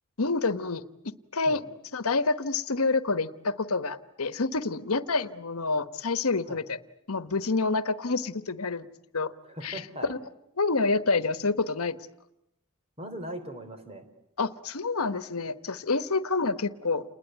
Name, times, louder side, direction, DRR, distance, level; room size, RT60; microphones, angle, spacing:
voice 1, 0.2-0.8 1.3-1.6 1.9-6.8 7.1-8.9 9.1-9.3 9.6-9.8 10.1-10.2 10.6-12.0 14.4-17.0, left 3 dB, 80° left, 13 dB, 1.2 m, -27 dB
voice 2, 9.5-10.1 13.0-14.1, equal, 25° right, 7 dB, 3.8 m, -39 dB
29.0 x 21.0 x 9.4 m, 0.84 s
head